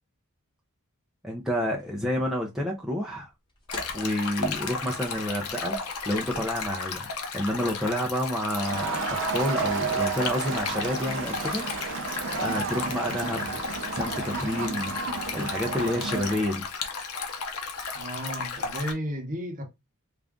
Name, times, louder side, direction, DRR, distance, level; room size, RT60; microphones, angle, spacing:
voice 1, 1.2-3.3 3.9-11.6 12.3-15.0 15.3-16.7, equal, ahead, 0.5 m, -29 dB
sound 1, 1.4-6.8, left 1 dB, 20° left, 1.4 m, -50 dB
Stream, 3.7-18.9, left 5 dB, 80° left, 0.8 m, -34 dB
Crowd, 8.5-16.5, right 5 dB, 60° right, 0.6 m, -32 dB
voice 2, 17.9-19.6, equal, 40° right, 0.9 m, -33 dB
3.6 x 2.5 x 3.5 m
head